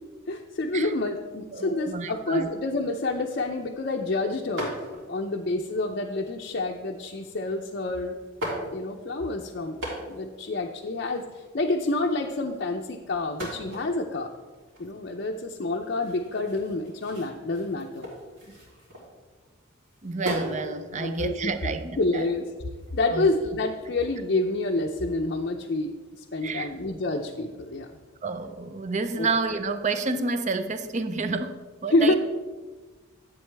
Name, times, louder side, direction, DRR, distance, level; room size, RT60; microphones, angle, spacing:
voice 1, 0.3-4.7 5.1-8.2 8.7-9.8 10.1-14.3 14.8-18.1 20.9-22.5 22.9-28.0 29.2-29.3 31.9-32.2, left 2 dB, 50° left, 0 dB, 0.5 m, -28 dB
voice 2, 1.5-2.5 20.0-22.3 23.1-23.3 26.4-26.7 28.2-32.2, right 3 dB, 35° right, 10 dB, 0.5 m, -29 dB
sound 1, 4.6-5.2 6.0-6.5 7.6-7.7 8.2-9.2 9.6-10.4 10.6-10.7 10.9-12.0 13.2-19.4 19.8-20.6 21.1-22.9, equal, 70° right, 3.3 m, -38 dB
11.0 x 8.2 x 3.4 m, 1.3 s
head